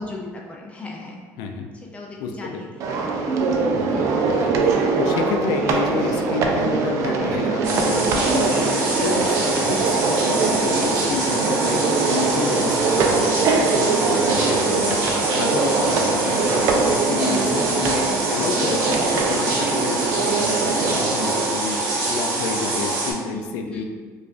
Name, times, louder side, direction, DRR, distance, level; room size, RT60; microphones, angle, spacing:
voice 1, 0.0-1.2 1.9-2.9 3.9-4.3 23.1-23.4 23.7-23.8, left 2 dB, 20° left, -1 dB, 0.4 m, -37 dB
voice 2, 1.4-1.7 2.2-2.7 3.7-15.0 15.3-21.8 22.1-23.8, left 4 dB, 80° left, 4 dB, 0.4 m, -29 dB
sound 1, 2.8-21.4, right 4 dB, 55° right, 0.4 m, -22 dB
sound 2, 7.6-23.1, right 2 dB, 70° right, 1.0 m, -25 dB
4.8 x 2.4 x 2.5 m, 1.5 s
cardioid pair, 150°, 6 cm